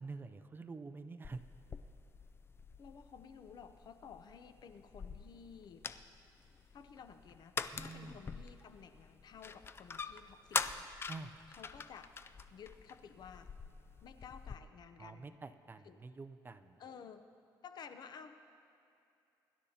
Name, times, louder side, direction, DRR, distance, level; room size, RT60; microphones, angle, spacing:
voice 1, 0.0-1.4 7.7-8.2 11.1-11.4 15.0-16.8, right 3 dB, 25° right, 10 dB, 0.5 m, -47 dB
sound 1, 1.2-14.6, left 5 dB, 30° left, 0.4 m, -45 dB
voice 2, 2.8-5.9 6.7-10.9 11.5-12.1 12.5-13.5 14.0-15.4 15.8-16.0 16.8-17.2 17.6-18.5, left 7 dB, 60° left, 9 dB, 0.7 m, -53 dB
23.5 x 11.5 x 2.9 m, 2.7 s
cardioid pair, 105°, 8 cm